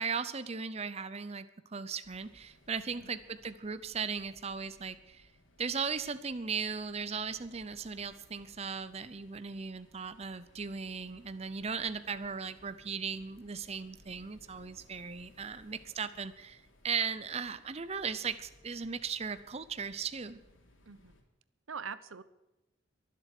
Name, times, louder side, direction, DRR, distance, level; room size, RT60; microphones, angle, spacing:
voice 1, 0.0-5.3 5.6-20.4, right 5 dB, 30° right, 12 dB, 0.6 m, -37 dB
sound 1, 2.0-21.2, left 1 dB, 75° left, 3.4 m, -63 dB
voice 2, 21.7-22.2, right 6 dB, 90° right, 14 dB, 0.9 m, -44 dB
23.0 x 7.7 x 6.7 m, 0.98 s
head